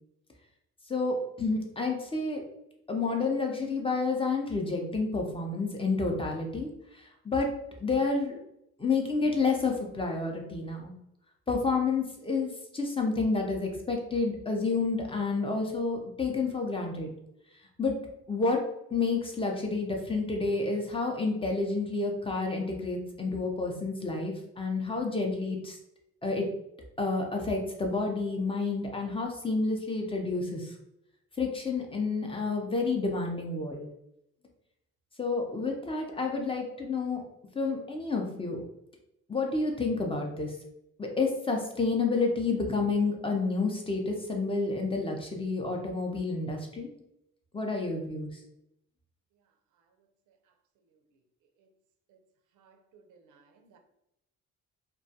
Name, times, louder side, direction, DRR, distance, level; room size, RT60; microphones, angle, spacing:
voice 1, 0.9-2.4 2.9-7.5 7.8-8.4 8.8-10.9 11.5-17.1 17.8-18.0 18.3-18.6 18.9-25.8 26.2-26.5 27.0-30.7 31.4-33.9 35.2-37.2 37.5-38.6 39.3-40.5 41.0-46.9 47.5-48.3, left 3 dB, 20° left, 0.5 m, -29 dB
voice 2, 52.5-53.8, right 5 dB, 80° right, 0.5 m, -61 dB
2.2 x 2.2 x 2.7 m
cardioid pair, 90°, 30 cm